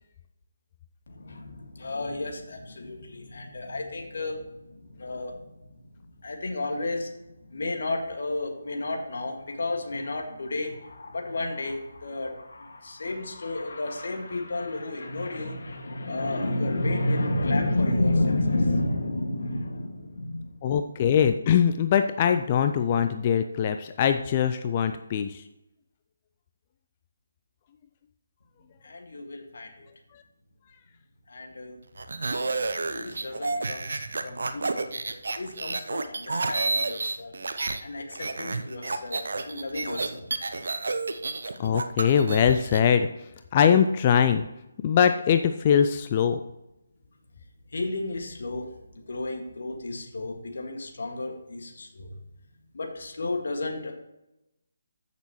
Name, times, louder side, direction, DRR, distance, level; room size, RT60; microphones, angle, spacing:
voice 1, 1.1-5.9 6.2-7.1 7.4-20.6 28.8-29.9 31.3-34.9 35.3-37.3 37.8-40.3 47.7-48.7 48.9-52.1 52.7-53.9, left 2 dB, 55° left, 2 dB, 1.9 m, -31 dB
voice 2, 20.6-25.5 30.1-30.2 41.6-44.4 44.8-46.4, left 8 dB, 30° left, 8 dB, 0.4 m, -22 dB
sound 1, 32.0-37.8 38.1-42.8, right 3 dB, 60° right, 0.7 m, -30 dB
14.5 x 6.7 x 3.1 m, 0.90 s
figure-of-eight pair, 150°, 0 cm